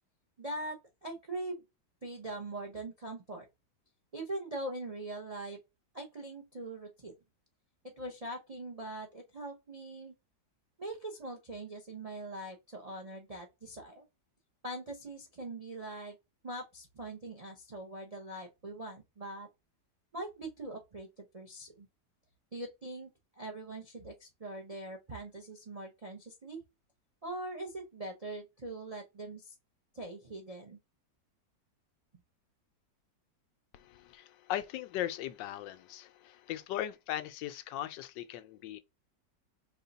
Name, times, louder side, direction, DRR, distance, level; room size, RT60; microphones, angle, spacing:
voice 1, 0.4-1.6 2.0-3.5 4.1-5.6 5.9-7.1 7.8-10.1 10.8-14.0 14.6-16.2 16.4-19.5 20.1-21.9 22.5-23.1 23.3-26.6 27.2-29.5 29.9-30.8, right 2 dB, 65° right, 0.3 m, -42 dB
voice 2, 33.7-38.8, left 12 dB, 80° left, 1.2 m, -38 dB
5.4 x 2.3 x 3.9 m
omnidirectional pair, 2.0 m